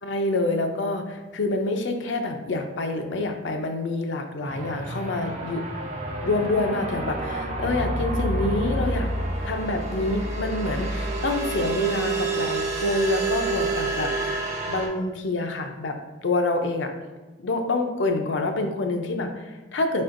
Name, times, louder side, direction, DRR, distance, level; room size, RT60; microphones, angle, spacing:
voice 1, 0.0-5.7 6.2-9.1 9.4-16.9 17.4-20.0, left 2 dB, 80° left, 5 dB, 0.5 m, -27 dB
sound 1, 4.4-14.9, right 2 dB, 40° right, 0.7 m, -28 dB
4.3 x 4.2 x 2.5 m, 1.2 s
head